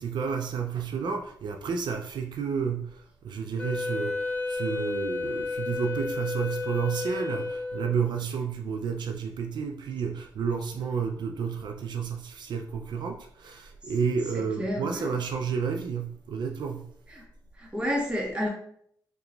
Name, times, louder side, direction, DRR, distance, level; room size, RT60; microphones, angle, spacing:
voice 1, 0.0-16.8, right 6 dB, 80° right, 4 dB, 0.3 m, -31 dB
Wind instrument woodwind instrument, 3.6-8.1, left 3 dB, 20° left, 0.7 m, -32 dB
voice 2, 14.3-15.1 17.1-17.2 17.6-18.5, equal, 15° right, -2 dB, 1.1 m, -30 dB
2.8 x 2.3 x 3.8 m, 0.65 s
cardioid pair, 75°, 8 cm